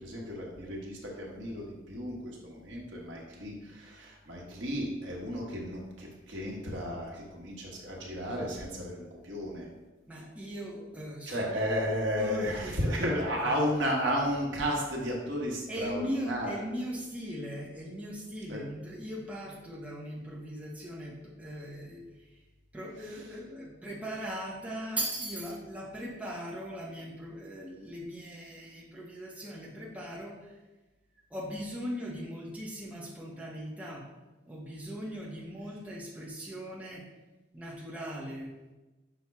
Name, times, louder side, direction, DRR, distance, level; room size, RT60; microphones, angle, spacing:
voice 1, 0.0-9.7 11.3-16.5 18.5-18.6, equal, 65° right, -2 dB, 1.0 m, -33 dB
voice 2, 10.1-11.4 12.2-13.6 15.7-22.4 22.7-30.6 31.3-34.1 34.5-37.0 37.5-38.5, equal, 5° right, -5 dB, 0.6 m, -39 dB
5.7 x 2.1 x 4.5 m, 1.1 s
head